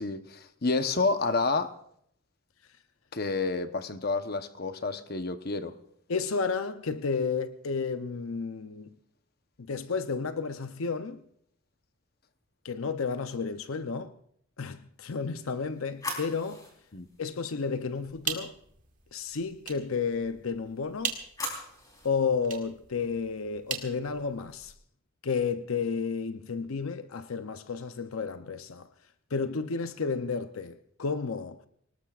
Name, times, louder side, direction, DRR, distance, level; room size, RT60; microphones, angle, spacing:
voice 1, 0.0-1.7 3.1-5.8 16.9-17.1, left 3 dB, 45° left, 0.9 m, -29 dB
voice 2, 6.1-8.9 9.6-11.2 12.6-14.2 14.6-16.7 17.2-18.5 19.1-21.2 22.0-24.7 25.2-28.9 29.3-31.6, left 5 dB, 75° left, 0.7 m, -32 dB
sound 1, 15.2-18.3 20.7-22.2, left 2 dB, 15° left, 3.9 m, -42 dB
Light Switch, 17.9-24.8, right 7 dB, 40° right, 1.9 m, -41 dB
24.5 x 19.0 x 2.5 m
head